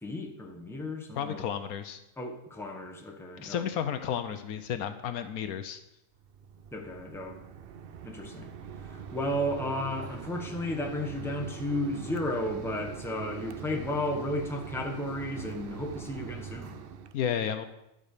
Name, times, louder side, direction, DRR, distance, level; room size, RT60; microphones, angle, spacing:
voice 1, 0.0-1.4 2.2-3.6 6.7-7.4 8.0-8.5 8.8-16.7, left 1 dB, ahead, 1 dB, 1.1 m, -33 dB
voice 2, 1.2-2.0 3.4-5.8 17.1-17.7, left 8 dB, 75° left, 9 dB, 1.1 m, -32 dB
Mechanisms, 6.2-17.1, right 7 dB, 65° right, 0.5 m, -42 dB
11.0 x 5.3 x 6.6 m, 0.86 s
omnidirectional pair, 1.6 m